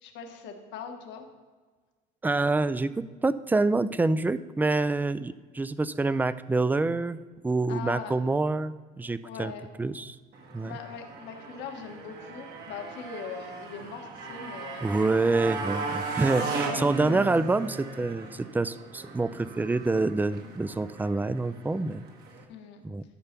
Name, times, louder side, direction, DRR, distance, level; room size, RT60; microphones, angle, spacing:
voice 1, 0.0-1.3 7.7-8.2 9.2-9.7 10.6-14.8 16.4-17.4 22.5-22.8, left 6 dB, 70° left, 4 dB, 1.5 m, -40 dB
voice 2, 2.2-9.5 9.8-10.2 10.5-10.8 14.8-22.0 22.8-23.0, right 3 dB, 10° right, 15 dB, 0.4 m, -27 dB
Motorcycle, 10.3-22.4, right 4 dB, 60° right, 1.7 m, -37 dB
12.5 x 5.5 x 6.0 m, 1.4 s
supercardioid pair, 95°, 19 cm